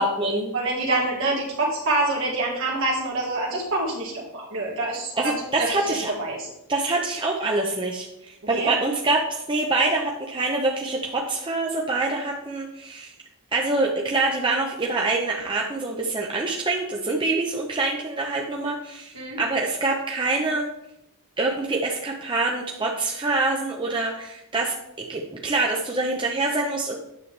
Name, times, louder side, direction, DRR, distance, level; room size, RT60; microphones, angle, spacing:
voice 1, 0.0-0.5 5.1-6.1 6.7-13.1 13.5-20.7 21.4-27.0, right 2 dB, 20° right, -1 dB, 0.7 m, -25 dB
voice 2, 0.5-6.5 8.4-8.7 19.1-19.4, right 2 dB, 65° right, -4 dB, 1.7 m, -26 dB
9.5 x 7.0 x 3.3 m, 0.85 s
head